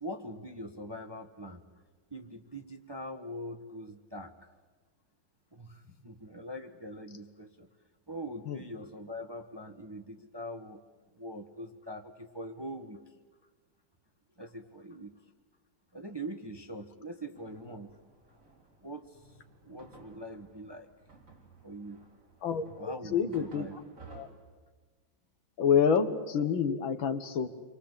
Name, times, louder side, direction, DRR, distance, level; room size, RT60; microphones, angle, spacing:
voice 1, 0.0-1.6 2.1-4.3 5.5-7.7 8.1-10.8 11.1-13.0 14.4-15.1 15.9-17.9 18.8-19.4 19.6-20.9 21.6-22.1 22.8-23.8, equal, 15° right, 5 dB, 1.1 m, -43 dB
sound 1, 17.3-24.3, right 3 dB, 40° right, 3.8 m, -55 dB
voice 2, 22.4-23.7 24.1-24.3 25.6-27.5, left 7 dB, 75° left, 10 dB, 2.2 m, -28 dB
29.0 x 24.0 x 8.3 m, 1.3 s
omnidirectional pair, 2.2 m